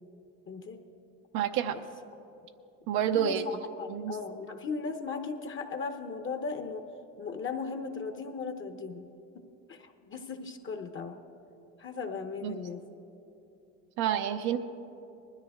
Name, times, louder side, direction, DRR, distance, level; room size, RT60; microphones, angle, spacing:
voice 1, 0.5-0.8 1.7-1.8 3.1-6.9 7.2-9.1 9.7-11.2 11.8-12.8, left 5 dB, 30° left, 6 dB, 0.9 m, -37 dB
voice 2, 1.3-1.8 2.9-3.4 3.9-4.1 12.4-12.5 14.0-14.6, right 9 dB, 75° right, 6 dB, 0.7 m, -28 dB
20.0 x 13.0 x 3.6 m, 2.9 s
cardioid pair, 115°, 38 cm